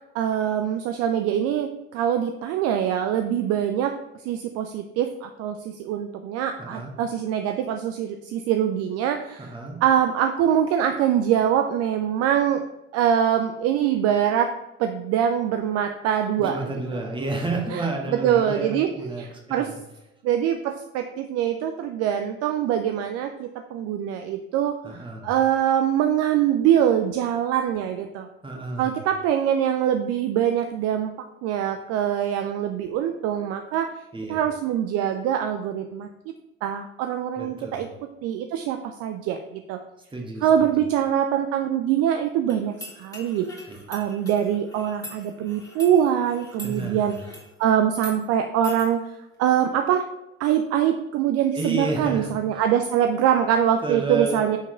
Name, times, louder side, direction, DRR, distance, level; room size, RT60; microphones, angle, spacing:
voice 1, 0.1-3.9 4.2-9.5 9.8-12.6 12.9-14.5 14.8-17.0 17.7-17.9 18.2-19.7 20.2-28.3 28.8-31.1 31.4-33.9 34.3-36.3 36.6-37.9 38.2-39.8 40.4-43.5 43.9-47.1 47.6-49.1 49.4-50.0 50.4-54.6, right 9 dB, 45° right, 7 dB, 0.5 m, -24 dB
voice 2, 6.6-6.9 9.4-9.8 16.4-19.7 24.8-25.3 28.4-29.0 34.1-34.4 37.4-37.9 40.1-40.7 43.7-43.8 46.6-47.2 51.5-52.4 53.8-54.5, right 3 dB, 15° right, 1 dB, 1.4 m, -31 dB
sound 1, 42.5-47.5 47.9-48.2 48.6-48.9, left 1 dB, 10° left, 2.2 m, -43 dB
5.9 x 4.3 x 4.3 m, 0.93 s
figure-of-eight pair, 55°, 33 cm